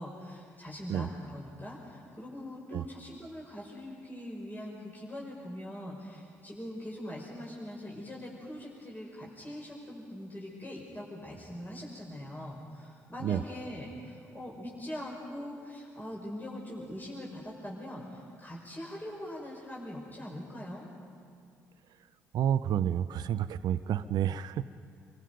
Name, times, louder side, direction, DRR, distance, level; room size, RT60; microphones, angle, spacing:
voice 1, 0.0-20.8, left 1 dB, 20° left, -3 dB, 5.3 m, -42 dB
voice 2, 22.3-24.6, right 10 dB, 55° right, 13 dB, 0.6 m, -29 dB
26.0 x 23.5 x 5.3 m, 2.4 s
figure-of-eight pair, 50°, 9 cm